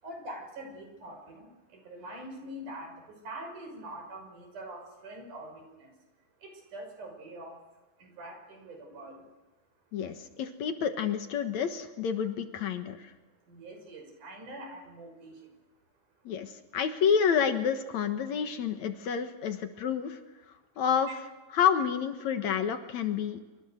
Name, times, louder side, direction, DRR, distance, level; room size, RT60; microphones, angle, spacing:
voice 1, 0.0-5.9 6.4-7.6 8.0-9.2 13.5-15.5 21.1-21.2, right 1 dB, 75° right, 3 dB, 7.4 m, -44 dB
voice 2, 9.9-13.1 16.3-20.2 20.8-21.1 21.5-23.4, left 7 dB, 65° left, 7 dB, 2.6 m, -29 dB
27.5 x 25.0 x 6.5 m, 1.1 s
omnidirectional pair, 3.6 m